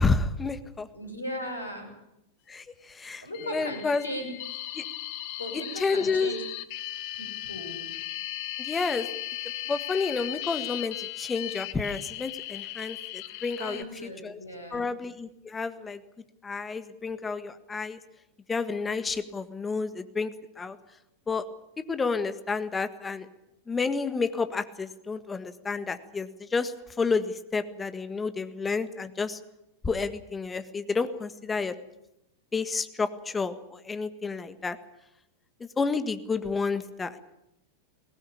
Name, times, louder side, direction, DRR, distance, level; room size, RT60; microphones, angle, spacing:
voice 1, 0.0-0.9 2.5-3.3 3.5-4.0 4.7-4.8 5.5-6.3 8.6-9.1 9.7-13.8 14.2-14.4 14.7-16.0 16.4-18.0 18.5-20.8 21.3-21.4 21.8-23.3 23.7-29.4 29.8-31.7 32.5-34.8 35.6-37.2, left 4 dB, 15° left, 11 dB, 1.6 m, -30 dB
voice 2, 0.9-1.9 3.2-4.3 5.4-6.4 7.1-7.9 13.6-14.8, equal, 75° left, 4 dB, 6.6 m, -37 dB
sound 1, 3.3-13.8, left 15 dB, 50° left, 1.3 m, -37 dB
22.0 x 18.5 x 8.6 m, 0.84 s
figure-of-eight pair, 90°, 0 cm